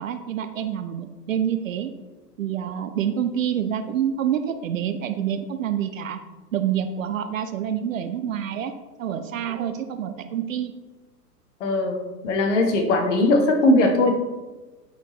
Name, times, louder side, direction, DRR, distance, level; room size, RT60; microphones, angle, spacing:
voice 1, 0.0-1.9 2.4-6.2 6.5-10.7, right 9 dB, 55° right, 8 dB, 0.6 m, -27 dB
voice 2, 11.6-14.1, left 2 dB, 45° left, 4 dB, 1.2 m, -20 dB
9.1 x 4.2 x 3.0 m, 1.2 s
figure-of-eight pair, 110°, 49 cm